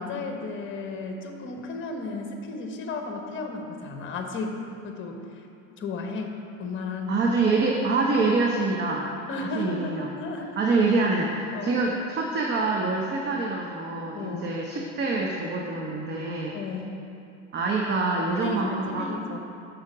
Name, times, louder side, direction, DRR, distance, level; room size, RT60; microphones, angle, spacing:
voice 1, 0.0-4.6 4.8-5.5 5.8-7.1 9.3-10.6 11.5-11.8 14.1-14.5 16.5-17.0 18.3-19.5, left 3 dB, 30° left, 3 dB, 1.0 m, -34 dB
voice 2, 7.1-9.1 9.4-10.1 10.6-16.6 17.5-19.1, right 3 dB, 25° right, -1 dB, 0.7 m, -25 dB
6.3 x 5.0 x 6.0 m, 2.8 s
hypercardioid pair, 90°, 41 cm